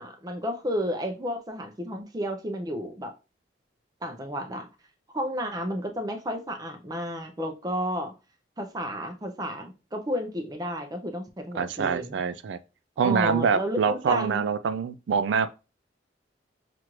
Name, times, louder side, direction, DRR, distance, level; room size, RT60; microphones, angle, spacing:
voice 1, 0.0-3.1 4.0-4.7 5.1-8.1 8.6-12.2 13.0-14.4, equal, 20° right, 0.6 m, -32 dB
voice 2, 11.5-12.6 13.0-15.5, right 6 dB, 85° right, 0.3 m, -25 dB
5.8 x 2.5 x 3.0 m
head